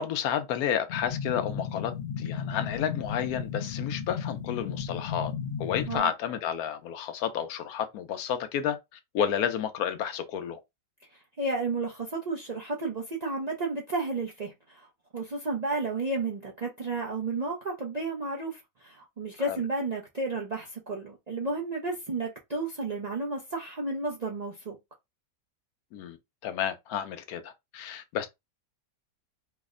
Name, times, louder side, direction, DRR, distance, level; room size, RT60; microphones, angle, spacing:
voice 1, 0.0-5.3 5.6-10.6 19.5-19.6 25.9-26.2 26.4-28.3, left 9 dB, 85° left, 1.1 m, -31 dB
sound 1, 0.9-6.0, left 7 dB, 55° left, 0.7 m, -34 dB
voice 2, 11.4-14.9 15.1-24.8, right 3 dB, 55° right, 0.4 m, -32 dB
3.2 x 2.1 x 3.6 m
omnidirectional pair, 1.5 m